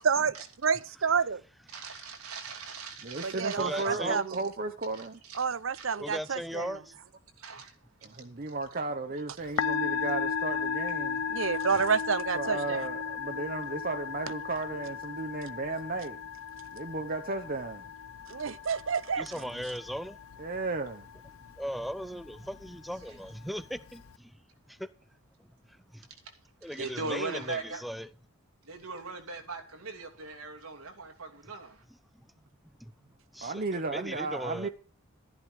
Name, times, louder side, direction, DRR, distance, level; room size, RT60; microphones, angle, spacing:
voice 1, 0.6-1.4 3.2-4.4 5.4-6.7 11.3-12.9 18.3-19.3, right 6 dB, 65° right, 0.6 m, -29 dB
voice 2, 1.7-3.9 4.3-4.4 4.9-5.5 5.7-5.9 7.0-7.1 7.4-8.5 9.4-9.6 11.7-11.9 26.6-27.8 28.6-31.8, right 3 dB, 90° right, 2.7 m, -40 dB
voice 3, 3.0-5.2 8.0-11.2 12.3-16.2 16.7-17.9 19.3-19.5 20.4-21.1 33.4-34.7, right 3 dB, 40° right, 0.9 m, -34 dB
voice 4, 3.6-4.2 6.0-7.0 19.2-20.2 21.6-24.4 24.7-24.9 25.9-26.0 26.6-28.1 32.1-32.3 32.8-32.9 33.3-34.7, equal, ahead, 0.6 m, -38 dB
Musical instrument, 9.4-24.1, left 6 dB, 75° left, 0.6 m, -36 dB
13.0 x 11.0 x 4.7 m
head